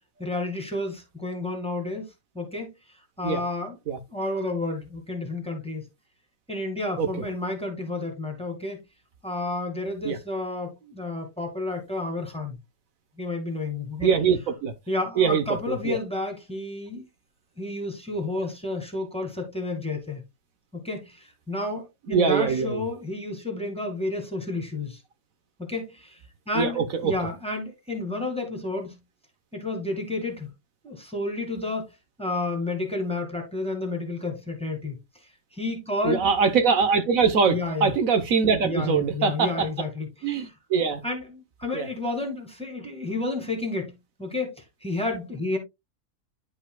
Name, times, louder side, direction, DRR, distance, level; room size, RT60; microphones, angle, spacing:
voice 1, 0.2-2.1 2.3-2.7 3.2-3.7 4.1-5.9 6.5-8.8 9.2-12.6 13.2-14.1 14.9-17.1 17.6-20.2 20.7-25.0 25.6-26.2 26.5-29.0 29.5-30.5 30.8-31.9 32.2-35.0 35.5-36.3 37.5-37.9 38.6-40.5 41.0-44.5 44.8-45.6, left 2 dB, 5° left, 2.0 m, -31 dB
voice 2, 14.0-14.7 15.2-16.0 22.1-22.8 26.5-27.1 36.0-39.7 40.2-41.0 41.7-41.9, right 5 dB, 70° right, 1.4 m, -23 dB
10.0 x 5.6 x 2.2 m
omnidirectional pair, 1.5 m